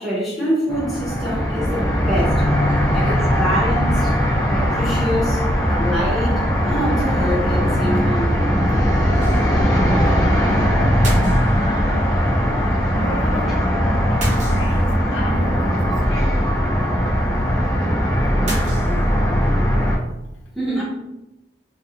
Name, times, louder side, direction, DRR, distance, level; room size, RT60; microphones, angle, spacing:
voice 1, 0.0-2.4 2.9-4.2 4.5-5.4 5.7-8.3 20.5-20.8, equal, ahead, -8 dB, 0.8 m, -25 dB
sound 1, 0.7-20.0, equal, 20° left, 0.5 m, -19 dB
sound 2, 9.1-9.7 10.0-10.1 11.0-11.9 14.2-15.1 18.5-19.4, right 1 dB, 40° right, 0.7 m, -31 dB
voice 2, 12.9-13.6 14.1-16.4 19.7-19.8 20.3-20.4, left 2 dB, 70° left, 0 dB, 0.5 m, -33 dB
2.7 x 2.3 x 2.4 m, 0.93 s
head